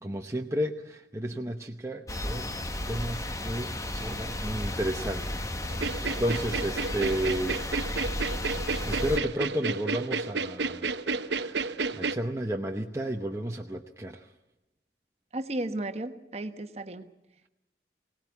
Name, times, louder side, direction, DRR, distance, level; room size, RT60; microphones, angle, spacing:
voice 1, 0.0-2.5 2.9-7.6 8.8-14.3, equal, 15° right, 2 dB, 0.8 m, -33 dB
sound 1, 2.1-9.2, left 1 dB, 20° left, 1.2 m, -33 dB
sound 2, 5.7-12.1, right 4 dB, 80° right, 0.9 m, -31 dB
voice 2, 15.3-17.1, right 1 dB, 35° right, 8 dB, 1.2 m, -34 dB
23.0 x 18.0 x 8.4 m, 0.94 s
head